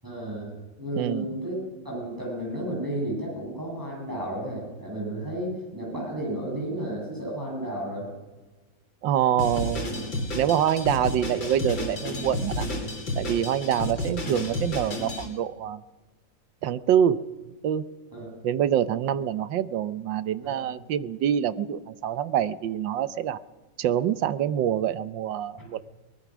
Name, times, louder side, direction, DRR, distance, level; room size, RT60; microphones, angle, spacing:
voice 1, 0.0-1.6 1.8-8.1 13.8-14.0 18.1-18.3 20.4-20.8, right 1 dB, 10° right, -3 dB, 7.7 m, -33 dB
voice 2, 1.0-1.3 9.0-10.0 10.3-12.7 13.2-15.8 16.6-17.3 17.6-17.9 18.4-23.4 23.8-25.8, right 10 dB, 75° right, 15 dB, 1.5 m, -26 dB
Drum kit, 9.4-15.3, left 1 dB, 85° left, 4.6 m, -31 dB
23.5 x 20.0 x 6.2 m, 1.2 s
omnidirectional pair, 2.0 m